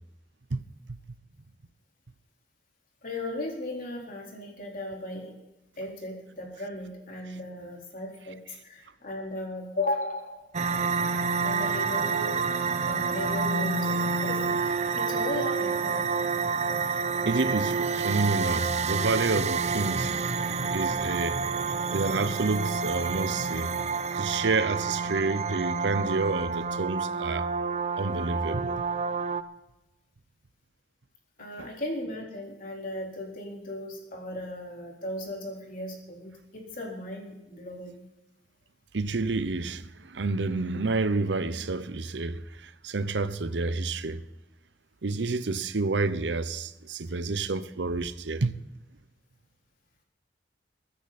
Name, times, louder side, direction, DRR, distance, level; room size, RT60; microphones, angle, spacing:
voice 1, 3.0-5.3 5.8-8.4 8.6-10.4 11.4-12.4 12.8-16.1 31.4-36.3 36.7-38.1, left 1 dB, 50° left, 4.0 m, -36 dB
sound 1, 10.5-29.4, right 5 dB, 40° right, 0.7 m, -28 dB
voice 2, 17.3-20.1 20.7-21.4 21.9-23.7 24.1-27.5 28.0-28.8 31.6-31.7 38.9-44.2 45.0-48.6, right 3 dB, 85° right, 0.8 m, -29 dB
22.5 x 10.0 x 4.2 m
head